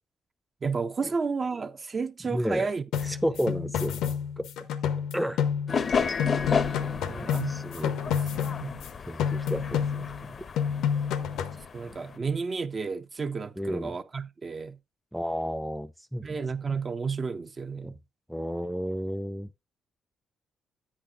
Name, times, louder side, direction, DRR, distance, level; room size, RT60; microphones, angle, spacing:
voice 1, 0.6-2.8 7.0-8.3 8.6-8.8 11.7-14.8 16.2-18.0, right 5 dB, 35° right, 0.7 m, -32 dB
voice 2, 2.2-2.7 3.0-4.5 5.1-5.4 7.0-8.0 9.1-10.4 13.6-14.0 15.1-16.4 17.8-17.9 18.3-19.5, equal, ahead, 0.5 m, -32 dB
sound 1, 2.9-5.9 6.2-8.9 9.2-10.3 10.6-11.6, left 8 dB, 85° left, 0.8 m, -29 dB
sound 2, 5.7-12.2, left 6 dB, 45° left, 0.6 m, -32 dB
10.0 x 8.7 x 2.5 m
cardioid pair, 90°, 0 cm